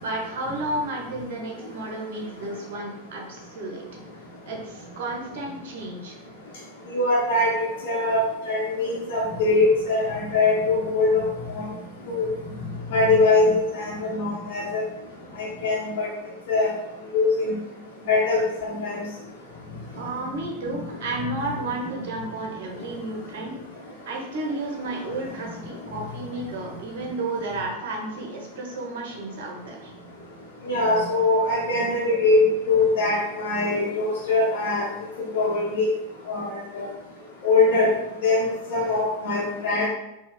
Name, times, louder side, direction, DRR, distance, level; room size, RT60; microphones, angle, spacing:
voice 1, 0.0-3.8 4.4-6.2 20.0-23.5 24.1-29.9, right 2 dB, 55° right, 0 dB, 0.9 m, -32 dB
voice 2, 6.9-7.5 7.8-11.2 11.5-11.6 12.1-12.3 12.9-14.8 15.4-16.1 16.5-16.7 17.1-17.5 18.1-19.0 30.6-34.9 35.3-35.9 36.3-36.9 37.4-37.9 38.2-39.9, left 3 dB, 45° left, -6 dB, 1.0 m, -22 dB
4.5 x 2.4 x 3.1 m, 0.93 s
figure-of-eight pair, 90°, 0 cm